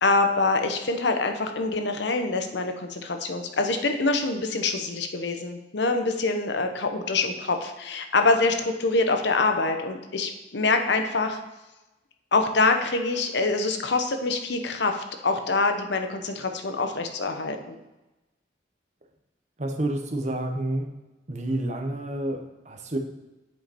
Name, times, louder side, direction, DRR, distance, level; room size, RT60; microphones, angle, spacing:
voice 1, 0.0-11.4 12.3-17.7, left 3 dB, 70° left, 5 dB, 0.8 m, -25 dB
voice 2, 19.6-20.9 21.3-23.0, right 1 dB, 40° right, 4 dB, 0.9 m, -29 dB
8.1 x 5.2 x 4.3 m, 1.0 s
head